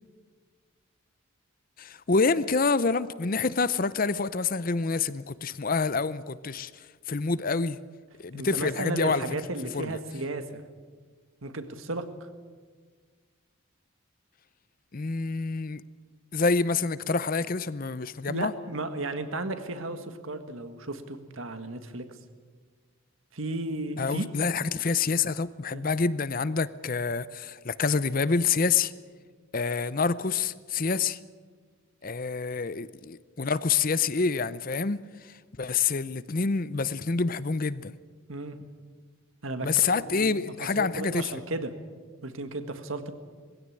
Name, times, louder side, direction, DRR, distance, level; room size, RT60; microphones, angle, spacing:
voice 1, 1.8-7.8 8.2-9.2 9.7-10.0 14.9-15.8 16.3-18.5 24.0-28.9 29.5-31.2 32.0-37.9 39.6-41.3, left 4 dB, 40° left, 0.6 m, -27 dB
voice 2, 8.3-10.6 11.4-12.0 18.3-22.0 23.3-24.3 25.7-25.9 38.3-38.7 39.4-40.4 40.8-41.7 42.2-43.1, right 2 dB, 70° right, 1.8 m, -34 dB
21.0 x 16.0 x 10.0 m
head